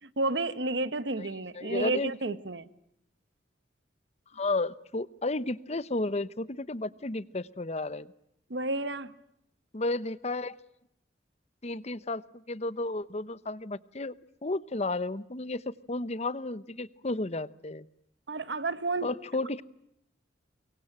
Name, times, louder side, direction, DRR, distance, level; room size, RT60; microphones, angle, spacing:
voice 1, 0.0-2.7 8.5-9.1 18.3-19.1, right 2 dB, 70° right, 13 dB, 1.5 m, -31 dB
voice 2, 1.5-2.3 4.3-8.1 9.7-10.5 11.6-12.2 12.5-14.1 14.4-17.9 19.0-19.6, left 2 dB, 35° left, 17 dB, 0.9 m, -32 dB
25.0 x 23.0 x 8.8 m, 0.78 s
head